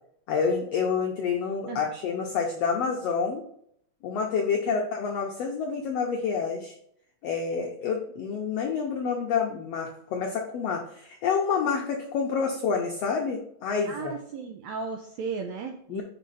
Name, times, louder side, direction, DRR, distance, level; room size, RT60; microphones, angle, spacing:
voice 1, 0.3-3.4 4.0-6.7 7.2-14.1 15.9-16.0, left 6 dB, 80° left, 1 dB, 1.4 m, -28 dB
voice 2, 13.9-16.0, right 5 dB, 90° right, 4 dB, 1.6 m, -35 dB
5.5 x 4.9 x 4.0 m, 0.68 s
omnidirectional pair, 3.7 m